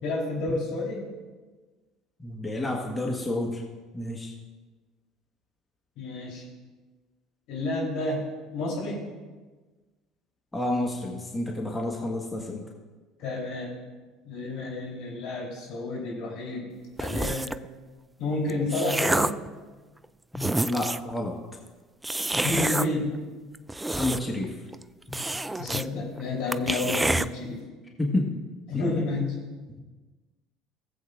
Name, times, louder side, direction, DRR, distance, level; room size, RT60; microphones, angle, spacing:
voice 1, 0.0-1.0 6.0-6.4 7.5-9.1 13.2-13.7 14.3-16.7 17.0-17.5 18.2-19.4 22.4-23.2 25.5-27.6 28.7-29.4, left 2 dB, 65° left, -3 dB, 3.8 m, -30 dB
voice 2, 2.2-3.6 3.9-4.3 10.5-12.6 20.3-21.3 23.9-24.5 25.1-25.2 28.0-28.3 28.7-28.9, left 1 dB, 15° left, -1 dB, 1.7 m, -30 dB
sound 1, 17.0-17.7 18.3-19.5 20.0-20.1 20.3-21.1 22.0-22.9 23.5-24.4 24.7-24.8 25.1-25.9 26.2-26.3 26.5-27.3, right 2 dB, 10° right, 0.4 m, -27 dB
18.5 x 7.9 x 2.6 m, 1.3 s
hypercardioid pair, 65°, 0 cm